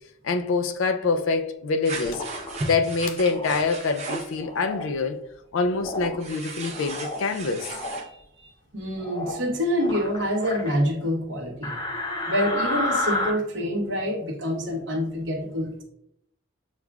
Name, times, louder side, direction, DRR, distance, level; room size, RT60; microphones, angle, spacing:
voice 1, 0.2-2.2 2.7-5.2 5.5-7.7, left 4 dB, 70° left, 0.4 m, -25 dB
sound 1, 1.8-4.4 6.2-8.0, right 3 dB, 30° right, 0.8 m, -35 dB
sound 2, 2.0-2.6 3.3-3.6 4.4-4.9 5.8-6.2 6.6-7.2 7.6-8.0 9.0-9.4 9.8-10.7 11.6-13.3, left 2 dB, 20° left, 0.6 m, -31 dB
voice 2, 8.0-11.8 12.3-15.8, equal, 55° right, 0.9 m, -27 dB
7.1 x 2.4 x 2.3 m
head